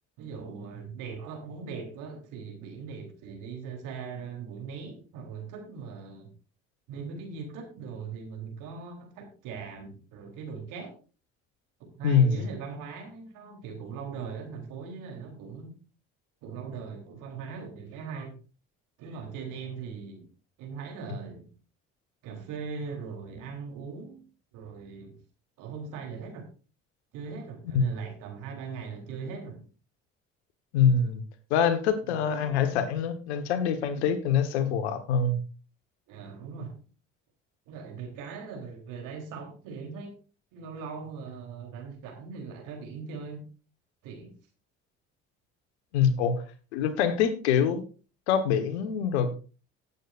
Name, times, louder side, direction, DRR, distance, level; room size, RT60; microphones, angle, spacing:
voice 1, 0.2-6.3 6.9-10.9 11.9-15.7 16.4-18.4 19.0-20.3 20.6-21.5 22.2-24.2 24.5-25.2 25.6-26.5 27.1-29.6 32.1-33.0 36.1-36.8 37.7-40.1 40.5-43.5 44.0-44.3, right 5 dB, 70° right, 3 dB, 3.8 m, -40 dB
voice 2, 12.0-12.4 27.7-27.9 30.7-31.2 31.5-35.4 45.9-46.4 46.7-47.8 48.3-49.3, left 6 dB, 85° left, 10 dB, 1.5 m, -24 dB
18.0 x 8.4 x 2.6 m, 0.35 s
hypercardioid pair, 60°, 33 cm